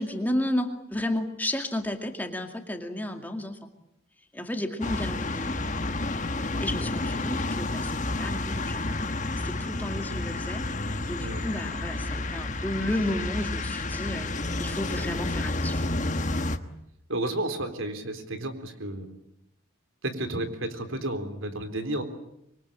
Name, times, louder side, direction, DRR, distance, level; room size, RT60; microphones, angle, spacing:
voice 1, 0.0-3.6 4.3-5.5 6.6-9.1 9.4-15.8, left 1 dB, 10° left, 5 dB, 2.2 m, -32 dB
sound 1, 4.8-16.6, left 2 dB, 40° left, 1.3 m, -30 dB
voice 2, 17.1-19.1 20.0-22.0, right 1 dB, 90° right, 8 dB, 3.7 m, -32 dB
26.0 x 23.5 x 9.0 m, 0.78 s
head